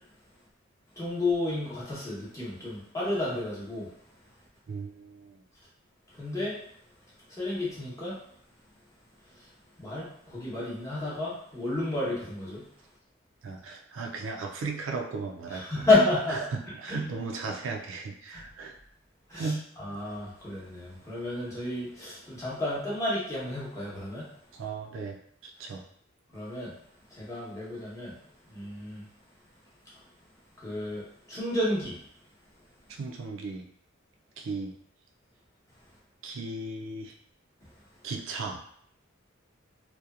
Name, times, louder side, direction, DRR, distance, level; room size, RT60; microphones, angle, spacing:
voice 1, 1.0-3.9 6.1-6.6 7.3-8.2 9.4-9.5 9.8-12.6 15.5-16.4 16.9-17.0 18.3-18.4 19.3-19.5 19.8-24.3 26.3-26.7 27.1-28.2 28.5-29.0 30.6-32.0 37.6-37.7, left 2 dB, 15° left, -8 dB, 0.8 m, -31 dB
voice 2, 4.7-5.4 13.4-15.9 16.3-18.8 19.3-19.6 24.5-25.8 32.9-33.7 34.4-34.8 36.2-37.1 38.0-38.6, right 4 dB, 65° right, 2 dB, 0.3 m, -36 dB
2.7 x 2.1 x 2.3 m, 0.68 s
head